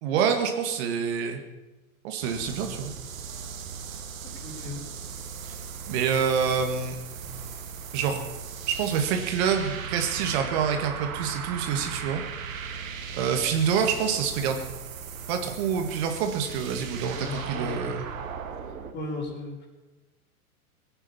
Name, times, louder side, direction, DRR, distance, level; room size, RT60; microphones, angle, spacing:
voice 1, 0.0-1.4 2.0-2.9 5.9-7.0 7.9-8.2 8.7-12.2 13.1-14.6 15.3-18.0, right 7 dB, 45° right, 5 dB, 1.9 m, -27 dB
sound 1, 2.2-18.9, right 6 dB, 65° right, 2.0 m, -38 dB
voice 2, 4.4-4.8 13.1-13.2 13.9-14.1 17.2-17.9 18.9-19.7, left 2 dB, 25° left, 1 dB, 4.6 m, -36 dB
21.0 x 9.0 x 7.2 m, 1.2 s
figure-of-eight pair, 95°, 43 cm